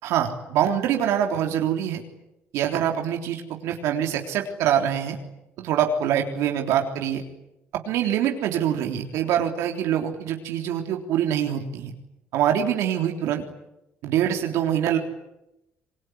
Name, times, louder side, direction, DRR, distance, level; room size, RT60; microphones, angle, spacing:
voice 1, 0.0-2.0 2.5-5.2 5.6-7.2 7.7-11.9 12.3-13.4 14.0-15.0, right 9 dB, 90° right, 3 dB, 3.6 m, -24 dB
27.0 x 22.5 x 9.9 m, 0.89 s
cardioid pair, 130°, 5 cm